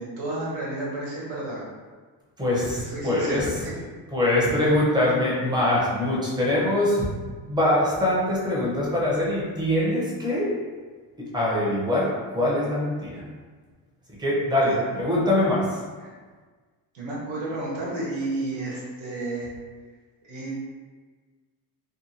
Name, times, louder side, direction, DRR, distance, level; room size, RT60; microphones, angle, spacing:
voice 1, 0.0-1.6 2.7-3.7 14.6-14.8 16.0-16.1 16.9-19.5 20.2-20.6, right 2 dB, 80° right, -6 dB, 1.2 m, -32 dB
voice 2, 2.4-3.5 4.1-7.1 7.5-10.5 11.2-13.2 14.2-15.8, left 1 dB, 10° right, -6 dB, 0.6 m, -23 dB
2.7 x 2.6 x 2.7 m, 1.4 s
cardioid pair, 155°, 44 cm